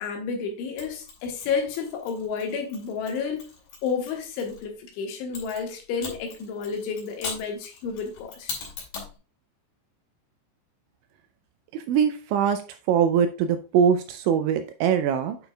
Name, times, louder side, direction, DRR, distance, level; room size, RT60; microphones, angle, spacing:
voice 1, 0.0-3.5 3.8-8.5, left 5 dB, 75° left, 3.5 m, -31 dB
Mechanisms, 0.8-4.6 5.3-9.2, left 5 dB, 55° left, 3.5 m, -40 dB
voice 2, 11.7-12.6 12.9-15.4, right 8 dB, 85° right, 2.7 m, -22 dB
8.9 x 6.0 x 2.3 m
omnidirectional pair, 5.7 m